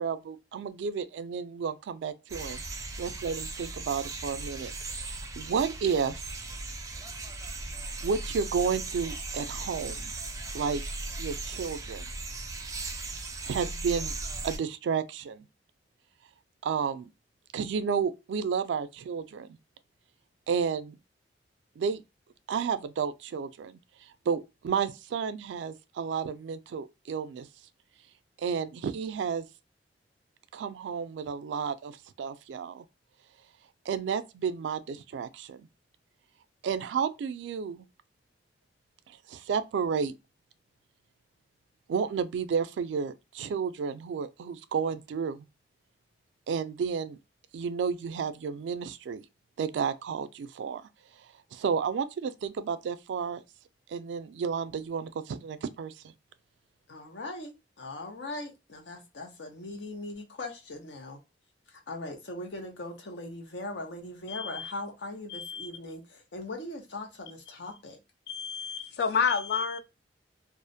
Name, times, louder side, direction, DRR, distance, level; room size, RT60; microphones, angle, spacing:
voice 1, 0.0-2.6 3.0-6.3 8.0-10.1 10.5-10.8 11.2-12.0 13.4-14.1 14.4-15.4 16.6-17.1 17.5-19.5 20.5-21.0 21.8-22.0 22.5-23.8 24.3-27.5 28.4-29.5 30.5-32.8 33.9-35.7 36.6-37.8 39.3-40.1 41.9-45.4 46.5-47.2 47.5-49.2 49.6-50.8 51.5-53.4 53.9-55.9, right 6 dB, 90° right, 0.3 m, -31 dB
sound 1, 2.3-14.6, right 3 dB, 20° right, 0.4 m, -38 dB
voice 2, 56.9-61.2 61.7-68.0, left 2 dB, 90° left, 0.8 m, -40 dB
voice 3, 64.3-64.7 65.3-65.7 68.3-69.8, left 6 dB, 65° left, 0.4 m, -30 dB
2.4 x 2.0 x 2.5 m
head